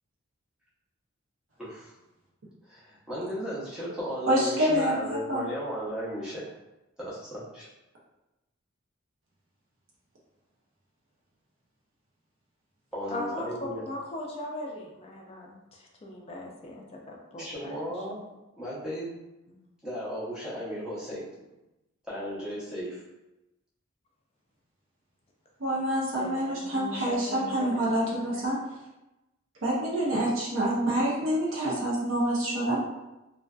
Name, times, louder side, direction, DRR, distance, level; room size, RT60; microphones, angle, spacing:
voice 1, 1.6-1.9 2.7-6.5 7.0-7.7 12.9-13.8 17.4-18.2 18.6-19.1 19.8-21.2 22.1-23.0, equal, 5° right, -10 dB, 0.7 m, -35 dB
voice 2, 4.3-5.4 25.6-28.6 29.6-32.8, right 1 dB, 65° right, -5 dB, 0.6 m, -27 dB
voice 3, 13.1-17.7 26.2-28.5, left 1 dB, 30° left, 0 dB, 0.3 m, -39 dB
2.5 x 2.2 x 2.3 m, 0.98 s
head